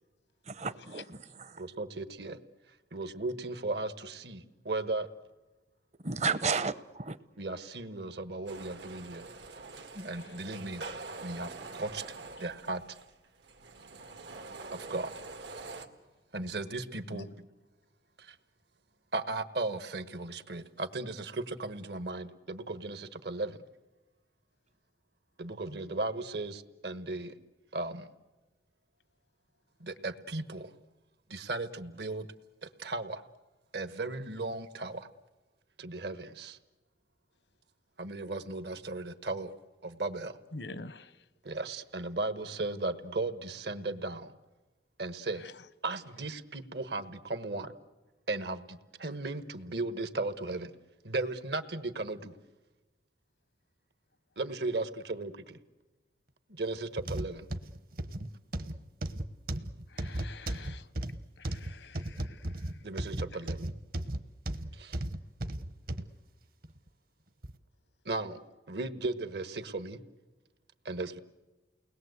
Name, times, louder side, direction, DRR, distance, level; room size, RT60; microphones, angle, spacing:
voice 1, 0.5-1.6 6.0-7.2 9.9-10.1, right 4 dB, 40° right, 15 dB, 0.8 m, -33 dB
voice 2, 1.6-2.4 2.9-4.4 4.7-5.1 7.4-9.2 10.0-10.8 11.2-11.5 11.8-12.0 12.4-12.8 14.9-15.1 16.3-17.3 19.1-23.5 25.4-27.3 27.7-28.0 29.9-30.7 31.3-32.2 32.8-33.2 33.7-35.0 35.8-36.5 38.0-39.5 39.8-40.3 41.5-44.3 45.0-45.4 45.8-47.7 48.3-48.6 49.0-50.7 51.0-52.3 54.4-55.3 56.6-57.4 62.8-63.7 68.1-68.4 68.7-70.0 70.9-71.2, right 2 dB, 70° right, 11 dB, 1.4 m, -36 dB
sound 1, 8.5-15.9, right 3 dB, 85° right, 2.0 m, -45 dB
voice 3, 40.5-41.2 45.4-45.6 59.9-60.9 61.4-62.7, left 3 dB, 85° left, 15 dB, 1.1 m, -47 dB
sound 2, 57.0-66.1 66.6-66.8 67.4-67.5, right 1 dB, 55° right, 1.1 m, -36 dB
29.5 x 20.5 x 8.1 m, 1.2 s
head